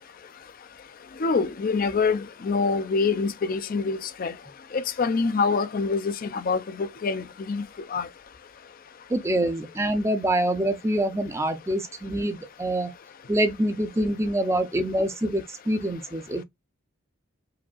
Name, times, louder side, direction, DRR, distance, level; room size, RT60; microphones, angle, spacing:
voice 1, 1.2-4.3 4.7-8.1, left 4 dB, 45° left, 0.4 m, -26 dB
voice 2, 9.1-12.9 13.3-16.4, right 1 dB, 15° right, 0.5 m, -25 dB
4.9 x 2.7 x 2.3 m
head